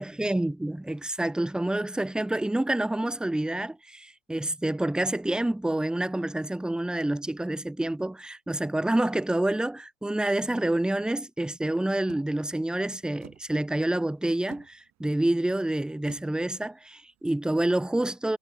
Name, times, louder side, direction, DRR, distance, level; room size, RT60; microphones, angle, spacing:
voice 1, 0.0-18.4, right 1 dB, ahead, 0.8 m, -28 dB
sound 1, 12.1-17.7, right 14 dB, 40° right, 4.3 m, -55 dB
hypercardioid pair, 95°, 42 cm